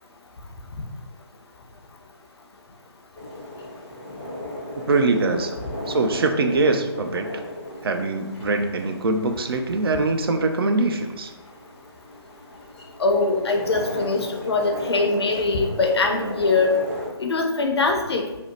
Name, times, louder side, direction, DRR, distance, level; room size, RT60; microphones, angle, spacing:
sound 1, 3.1-17.1, left 1 dB, 10° left, 0.5 m, -36 dB
voice 1, 4.9-5.6 5.9-7.3 7.8-11.3, right 3 dB, 60° right, 6 dB, 0.4 m, -22 dB
voice 2, 13.0-16.8 17.2-18.2, left 3 dB, 65° left, 3 dB, 0.6 m, -22 dB
2.7 x 2.1 x 3.9 m, 1.1 s
figure-of-eight pair, 145°, 14 cm